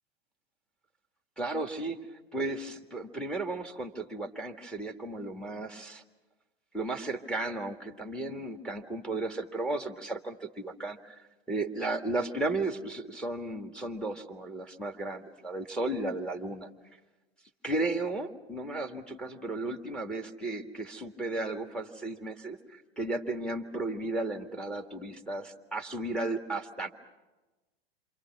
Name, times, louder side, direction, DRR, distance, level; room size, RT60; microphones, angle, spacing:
voice 1, 1.4-2.0 2.3-6.0 6.7-11.2 11.5-16.7 17.6-26.9, right 2 dB, 5° left, 4 dB, 2.1 m, -34 dB
28.5 x 26.0 x 6.2 m, 1.1 s
hypercardioid pair, 100°, 31 cm